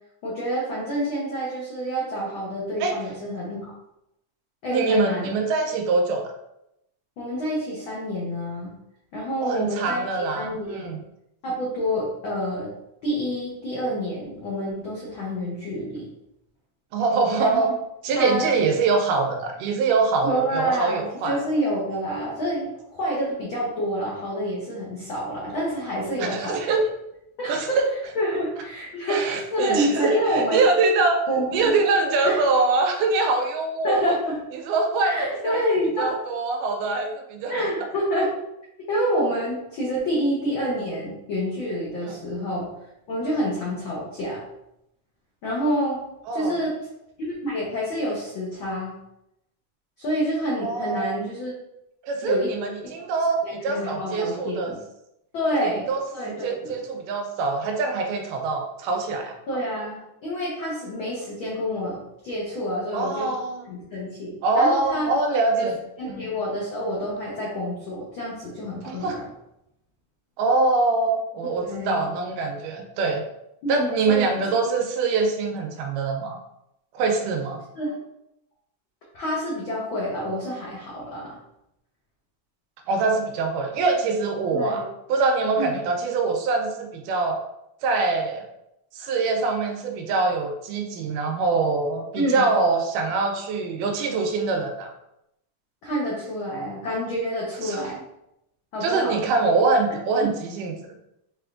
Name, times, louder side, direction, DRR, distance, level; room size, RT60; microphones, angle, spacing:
voice 1, 0.2-3.7 4.6-5.3 7.2-8.7 9.1-10.9 11.4-12.7 13.0-16.1 17.4-17.7 18.1-18.5 20.2-26.7 27.4-27.8 28.1-30.6 31.3-31.7 32.2-32.4 33.8-34.4 35.0-36.2 37.5-38.4 38.8-42.7 43.1-44.4 45.4-46.0 46.3-46.8 47.2-49.0 50.0-51.5 52.2-52.5 53.4-54.8 55.3-56.7 59.5-63.3 63.6-65.1 65.6-65.7 66.0-69.3 71.6-72.0 73.6-74.3 77.7-77.9 79.1-81.4 84.5-84.8 85.6-85.8 92.2-92.5 95.8-98.0 98.7-99.2 100.2-100.3, equal, 85° left, -5 dB, 1.1 m, -28 dB
voice 2, 4.7-6.3 9.4-11.0 16.9-17.7 18.0-21.4 26.2-26.9 27.5-27.9 29.1-31.2 31.5-34.2 34.6-35.6 36.0-37.5 42.1-42.2 46.3-46.6 50.6-51.1 52.0-54.7 55.6-59.4 62.9-63.6 64.4-65.8 66.1-66.3 68.8-69.2 70.4-73.2 73.7-76.4 76.9-77.6 82.9-84.8 85.1-87.4 87.8-88.5 88.9-94.9 97.6-97.8 98.8-100.7, right 3 dB, 85° right, 3 dB, 2.2 m, -24 dB
6.0 x 3.3 x 2.5 m, 0.84 s
omnidirectional pair, 3.8 m